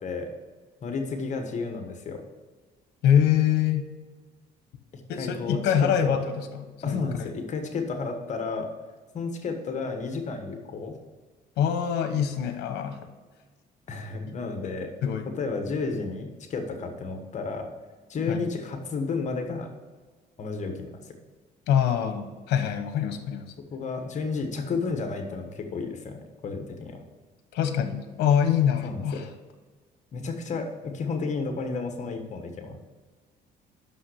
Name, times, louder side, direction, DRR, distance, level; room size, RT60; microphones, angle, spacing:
voice 1, 0.8-2.2 5.2-6.1 6.8-8.7 9.1-11.0 13.9-14.9 15.2-17.7 18.1-19.7 20.4-21.1 23.6-27.0 28.8-29.2 30.1-32.8, left 4 dB, 45° left, 5 dB, 1.2 m, -32 dB
voice 2, 3.0-3.9 5.1-7.3 11.6-13.1 14.3-14.4 15.0-15.3 18.3-18.4 21.7-23.5 27.5-29.3, left 9 dB, 80° left, 8 dB, 0.9 m, -25 dB
6.2 x 5.6 x 6.3 m, 1.4 s
cardioid pair, 110°, 17 cm